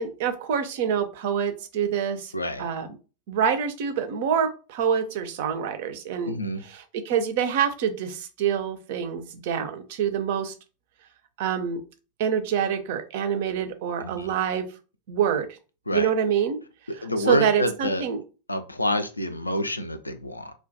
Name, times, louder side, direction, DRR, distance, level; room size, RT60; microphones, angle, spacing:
voice 1, 0.0-2.3 2.6-3.0 3.3-6.4 6.6-10.5 11.4-11.8 12.2-14.7 15.1-15.5 15.9-16.6 17.2-18.2, right 8 dB, 50° right, 0.4 m, -26 dB
voice 2, 2.3-2.6 6.2-6.6 14.0-14.3 15.9-16.1 16.9-18.0 18.5-20.5, left 1 dB, 85° left, 0.3 m, -27 dB
2.2 x 2.2 x 2.5 m
figure-of-eight pair, 90°, 0 cm